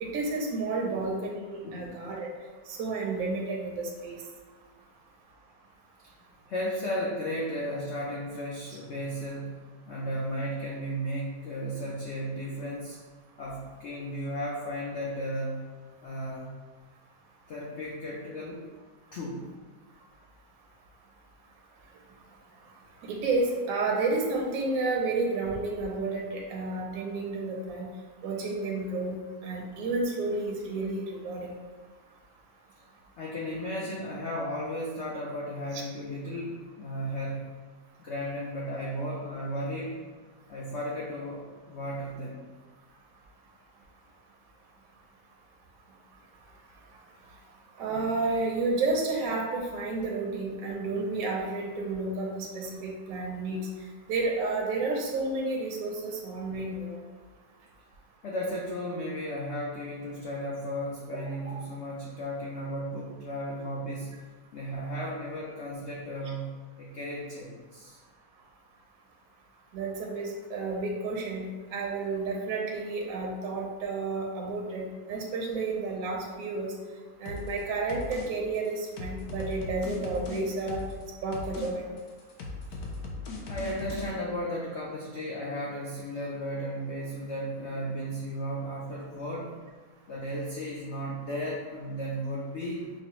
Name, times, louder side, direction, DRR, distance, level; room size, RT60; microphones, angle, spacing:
voice 1, 0.0-2.3 2.7-4.2 8.7-8.8 23.0-27.9 28.2-31.5 35.7-35.8 47.8-53.6 54.1-57.0 61.4-61.5 69.7-76.7 77.2-80.8 81.2-81.8, right 3 dB, 70° right, -1 dB, 0.9 m, -31 dB
voice 2, 0.8-1.2 1.6-2.0 6.5-13.0 13.4-15.7 16.0-16.5 17.5-18.6 19.1-19.5 32.8-32.9 33.2-37.5 38.0-40.0 40.5-42.4 58.2-64.2 64.5-68.0 82.7-82.8 83.5-89.6 90.1-92.8, equal, 90° left, -3 dB, 0.6 m, -35 dB
sound 1, 77.3-77.6 77.9-78.3 78.5-81.0 81.3-81.7 82.0-84.1, left 3 dB, 70° left, 1.1 m, -38 dB
5.3 x 2.0 x 3.0 m, 1.4 s
omnidirectional pair, 1.8 m